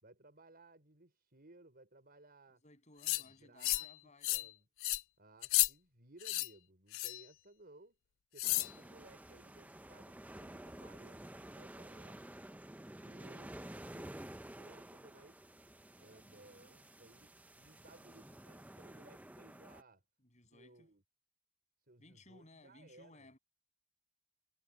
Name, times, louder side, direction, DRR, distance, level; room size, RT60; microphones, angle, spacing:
voice 1, 0.0-2.6 3.0-3.9 4.3-4.7 5.2-8.0 8.3-12.3 12.9-15.5 16.0-17.3 17.6-20.0 20.5-21.0 21.9-23.3, right 2 dB, 45° right, 4.9 m, -61 dB
voice 2, 2.6-4.5 20.3-20.9 22.0-23.4, left 2 dB, 30° left, 7.2 m, -61 dB
sound 1, 3.0-3.2 3.6-3.9 4.2-4.5 4.8-5.0 5.4-5.7 6.2-6.5 6.9-7.2 8.4-8.7, left 20 dB, 60° left, 0.3 m, -32 dB
sound 2, 8.4-19.8, right 1 dB, 5° right, 0.5 m, -52 dB
head